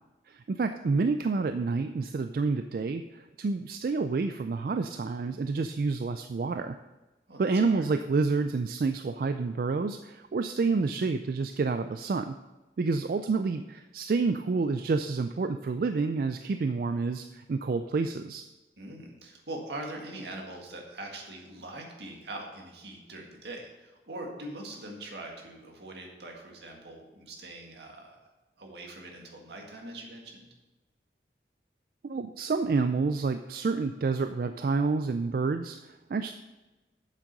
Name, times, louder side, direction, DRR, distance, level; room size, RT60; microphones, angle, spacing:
voice 1, 0.3-6.8 7.4-12.4 12.8-18.4 32.0-36.3, right 4 dB, 55° right, 9 dB, 0.3 m, -29 dB
voice 2, 7.3-7.9 18.8-28.2 28.6-30.5, right 1 dB, 75° right, 1 dB, 1.8 m, -42 dB
7.5 x 7.4 x 5.2 m, 1.1 s
head